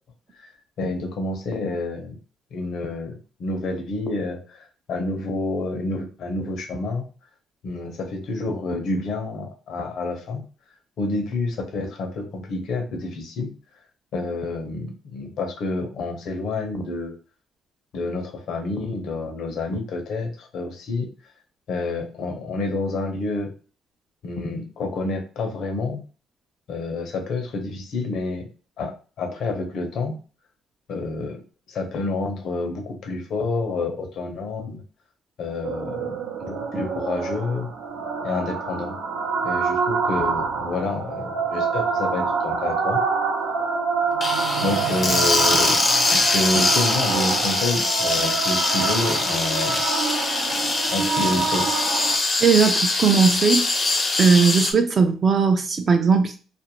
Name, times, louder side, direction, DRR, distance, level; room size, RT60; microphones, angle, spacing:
voice 1, 0.8-2.2 2.5-7.1 7.6-10.4 11.0-13.5 14.1-17.1 17.9-21.1 21.7-23.5 24.2-26.0 26.7-28.5 28.8-30.2 30.9-31.4 31.7-34.8 35.4-37.7 38.2-39.0 39.4-43.0 44.2-44.3 44.6-45.8 46.1-49.8 50.6-51.7, left 2 dB, 70° left, 3 dB, 0.7 m, -28 dB
sound 1, 35.6-52.2, right 5 dB, 80° right, 0.6 m, -26 dB
sound 2, 44.2-54.7, left 3 dB, 30° left, 0.5 m, -23 dB
voice 2, 52.4-53.6 54.2-56.4, right 5 dB, 35° right, 6 dB, 0.5 m, -18 dB
2.5 x 2.1 x 2.9 m, 0.36 s
cardioid pair, 115°, 0 cm